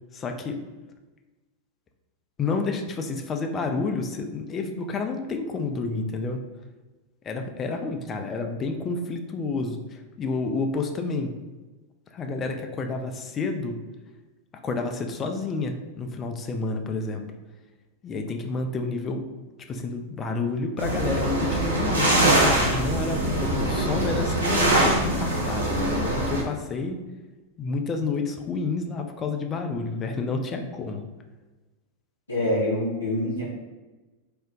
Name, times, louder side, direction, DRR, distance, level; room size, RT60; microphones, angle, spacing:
voice 1, 0.1-0.6 2.4-6.4 7.2-11.3 12.1-13.8 14.6-17.2 18.0-19.2 19.7-27.0 27.6-31.0, left 3 dB, 25° left, 5 dB, 0.3 m, -30 dB
sound 1, 20.8-26.4, right 1 dB, 80° right, 0.5 m, -23 dB
voice 2, 32.3-33.4, left 1 dB, 80° left, -7 dB, 0.6 m, -25 dB
2.5 x 2.1 x 3.6 m, 1.2 s
figure-of-eight pair, 90°, 0 cm